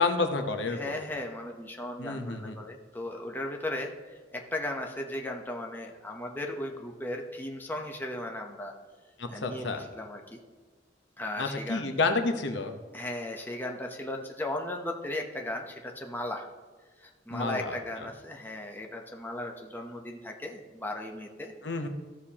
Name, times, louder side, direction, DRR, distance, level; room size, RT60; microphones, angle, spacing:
voice 1, 0.0-1.0 2.0-2.6 9.2-9.8 11.4-12.7 17.3-17.8 21.6-21.9, left 3 dB, 75° left, 6 dB, 0.9 m, -29 dB
voice 2, 0.7-8.7 9.3-10.4 11.2-11.8 12.9-16.5 17.0-21.5, left 1 dB, 10° left, 2 dB, 0.9 m, -36 dB
14.0 x 6.6 x 2.9 m, 1.4 s
head